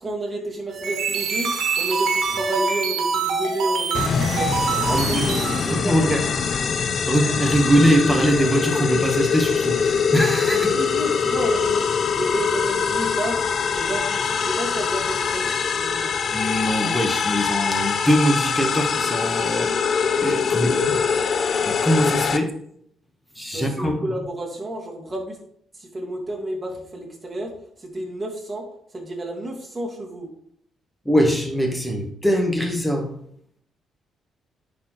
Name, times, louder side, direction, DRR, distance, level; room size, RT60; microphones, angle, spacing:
voice 1, 0.0-4.5 4.9-6.4 10.5-11.9 12.2-16.2 20.6-20.9 23.5-25.4 25.8-27.5 27.8-28.6 28.9-30.3, right 1 dB, 20° right, -2 dB, 2.3 m, -31 dB
sound 1, 0.7-5.7, right 5 dB, 75° right, 1.3 m, -25 dB
sound 2, 3.9-22.4, left 6 dB, 50° left, 0.5 m, -23 dB
voice 2, 4.8-5.4 5.7-6.2 6.8-10.7 16.3-19.8 20.2-20.8 21.6-22.5 23.3-24.1 31.0-33.2, equal, 5° left, 3 dB, 1.5 m, -22 dB
10.0 x 4.2 x 3.3 m, 0.67 s
cardioid pair, 90°, 0 cm